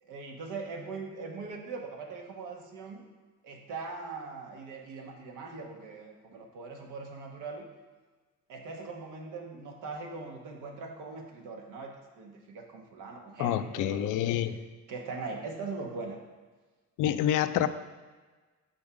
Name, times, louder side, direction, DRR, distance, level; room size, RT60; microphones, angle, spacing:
voice 1, 0.0-3.0 3.4-7.7 8.5-14.4 14.9-16.2, right 4 dB, 90° right, 1 dB, 1.2 m, -41 dB
voice 2, 13.4-14.6 17.0-17.7, left 11 dB, 85° left, 12 dB, 0.5 m, -27 dB
7.1 x 5.2 x 4.9 m, 1.3 s
cardioid pair, 90°, 30 cm